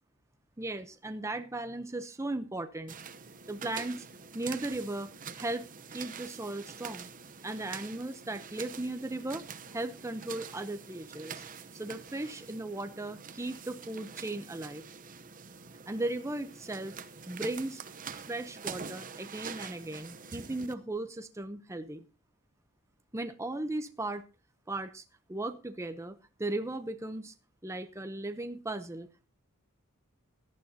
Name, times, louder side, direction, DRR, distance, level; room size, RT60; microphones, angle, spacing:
voice 1, 0.6-2.9 3.5-4.1 4.3-5.1 5.4-7.1 7.4-9.4 9.7-11.4 11.7-14.8 15.9-17.0 17.3-17.8 18.1-22.0 23.1-24.2 24.7-25.0 25.3-27.3 27.6-29.3, right 2 dB, 15° right, 9 dB, 0.7 m, -37 dB
sound 1, 2.9-20.7, right 6 dB, 40° right, 0.8 m, -45 dB
17.0 x 12.0 x 2.8 m, 0.31 s
head